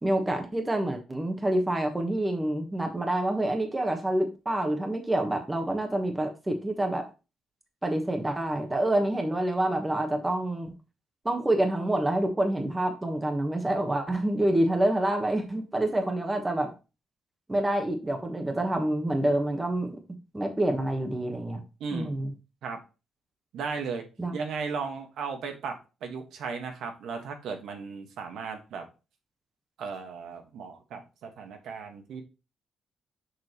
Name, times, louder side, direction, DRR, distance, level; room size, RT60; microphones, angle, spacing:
voice 1, 0.0-7.1 7.8-10.7 11.2-16.7 17.5-20.0 20.3-21.6 21.9-22.3 24.2-24.3, right 1 dB, 15° right, 4 dB, 1.2 m, -27 dB
voice 2, 21.8-22.2 22.6-22.8 23.5-24.0 24.3-25.7 26.0-28.8 29.8-32.2, right 5 dB, 80° right, 4 dB, 1.5 m, -36 dB
6.5 x 6.1 x 3.0 m, 0.29 s
cardioid pair, 125°, 0 cm